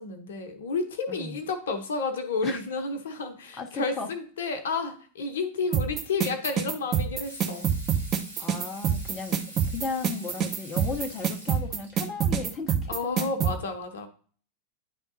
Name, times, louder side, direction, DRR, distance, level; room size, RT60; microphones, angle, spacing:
voice 1, 0.0-7.7 12.9-14.1, left 4 dB, 60° left, 7 dB, 0.9 m, -31 dB
voice 2, 3.6-4.1 8.4-13.3, left 4 dB, 25° left, 4 dB, 0.8 m, -35 dB
sound 1, 5.7-13.5, right 8 dB, 30° right, 0.9 m, -26 dB
Water tap faucet / Sink (filling or washing), 7.2-11.9 13.5-13.6, right 1 dB, 80° right, 1.5 m, -45 dB
9.9 x 3.6 x 2.7 m, 0.43 s
figure-of-eight pair, 90°, 0 cm